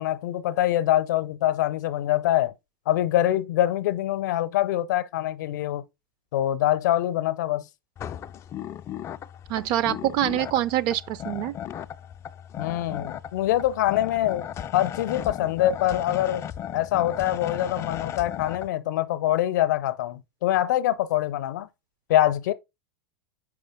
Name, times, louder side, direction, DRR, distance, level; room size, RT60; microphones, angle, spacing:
voice 1, 0.0-2.5 2.9-5.8 6.3-7.6 12.6-14.4 14.7-16.4 16.7-21.7 22.1-22.5, left 13 dB, 55° left, 0.7 m, -24 dB
sound 1, 8.0-18.7, left 10 dB, 25° left, 0.3 m, -36 dB
voice 2, 9.5-11.5, right 13 dB, 40° right, 0.5 m, -25 dB
6.5 x 4.9 x 3.6 m
figure-of-eight pair, 85°, 11 cm